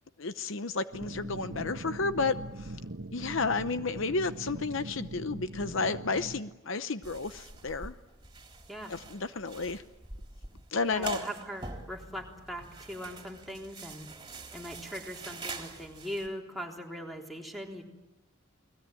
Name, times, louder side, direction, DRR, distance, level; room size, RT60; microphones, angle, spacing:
voice 1, 0.2-2.3 2.6-2.7 3.1-7.9 8.9-9.8 10.7-11.2, left 4 dB, 65° left, 11 dB, 0.8 m, -32 dB
sound 1, 0.9-6.4, right 1 dB, 70° right, 1.5 m, -41 dB
sound 2, 7.0-16.3, right 3 dB, 20° right, 3.7 m, -44 dB
voice 2, 10.8-14.1 14.5-17.8, equal, ahead, -1 dB, 3.7 m, -40 dB
29.5 x 20.5 x 9.2 m, 1.0 s
head